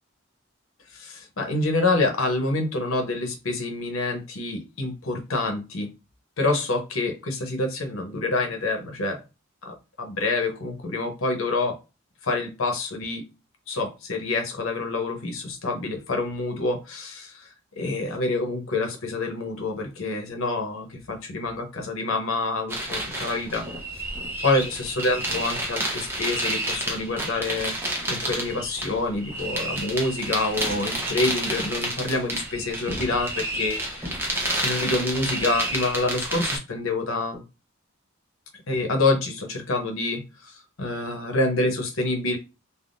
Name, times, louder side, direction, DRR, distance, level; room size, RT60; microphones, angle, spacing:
voice 1, 0.9-5.9 6.4-9.2 9.6-11.8 12.2-13.3 13.7-17.5 17.8-23.7 24.0-24.1 24.4-27.7 28.1-37.4 38.7-42.4, left 2 dB, 75° left, 4 dB, 0.8 m, -27 dB
sound 1, 22.7-36.6, right 1 dB, 10° right, 0.7 m, -30 dB
3.4 x 2.0 x 2.5 m, 0.28 s
head